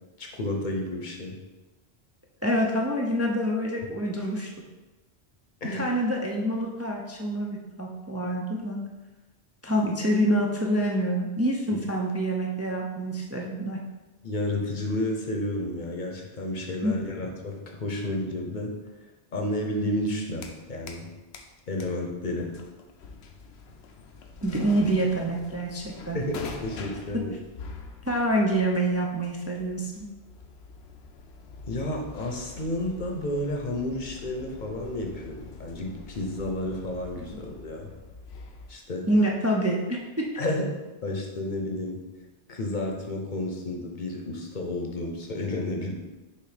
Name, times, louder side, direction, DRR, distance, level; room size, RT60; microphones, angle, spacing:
voice 1, 0.2-1.4 5.6-5.9 11.7-11.8 14.2-18.7 19.3-21.1 21.7-22.5 26.1-27.4 31.7-37.9 38.7-39.1 40.4-40.7 41.0-42.0 42.5-45.9, left 1 dB, 45° left, 1 dB, 0.9 m, -31 dB
voice 2, 2.4-4.5 5.7-8.8 9.6-13.8 16.8-17.0 24.4-26.2 28.0-30.1 39.1-40.3, right 1 dB, 20° right, -1 dB, 0.4 m, -26 dB
sound 1, 20.0-21.1 21.3-38.8, left 4 dB, 70° left, 0.9 m, -44 dB
6.6 x 2.9 x 5.0 m, 1.1 s
omnidirectional pair, 1.2 m